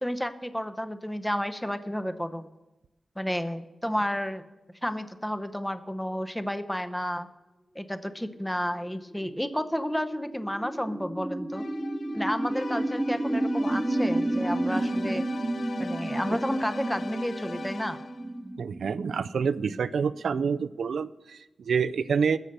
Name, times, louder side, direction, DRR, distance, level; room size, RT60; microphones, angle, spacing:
voice 1, 0.0-2.5 3.2-4.4 4.8-7.3 7.7-11.6 12.1-15.3 15.8-18.0, equal, 5° left, 10 dB, 0.8 m, -31 dB
sound 1, 8.3-20.4, right 1 dB, 15° right, 1.0 m, -31 dB
sound 2, 11.5-18.4, left 4 dB, 65° left, 0.6 m, -41 dB
voice 2, 18.6-22.4, right 6 dB, 85° right, 14 dB, 0.3 m, -27 dB
15.5 x 6.7 x 6.7 m, 1.0 s
cardioid pair, 55°, 0 cm